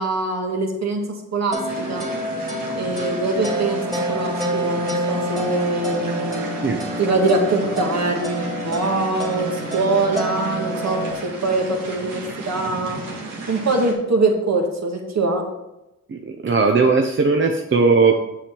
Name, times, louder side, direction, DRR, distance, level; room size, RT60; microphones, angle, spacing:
voice 1, 0.0-2.0 2.7-6.5 7.0-13.0 13.5-15.4, right 2 dB, 55° right, 2 dB, 1.8 m, -23 dB
sound 1, 1.5-11.1, equal, 10° right, 2.3 m, -28 dB
sound 2, 1.6-13.9, right 3 dB, 85° right, 1.8 m, -34 dB
voice 2, 16.1-18.1, right 4 dB, 35° right, 3 dB, 0.7 m, -18 dB
7.5 x 6.9 x 4.5 m, 0.93 s
cardioid pair, 75°, 32 cm